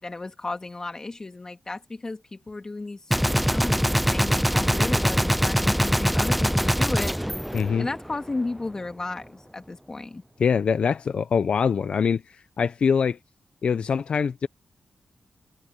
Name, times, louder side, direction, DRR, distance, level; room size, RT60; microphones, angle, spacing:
voice 1, 0.0-7.1 7.8-10.2, left 3 dB, 30° left, 2.3 m, -33 dB
Gunshot gunfire, 3.1-8.3, equal, ahead, 0.4 m, -23 dB
voice 2, 7.5-7.9 10.4-13.2 13.6-14.5, left 6 dB, 65° left, 0.7 m, -23 dB
cardioid pair, 75°, 2 cm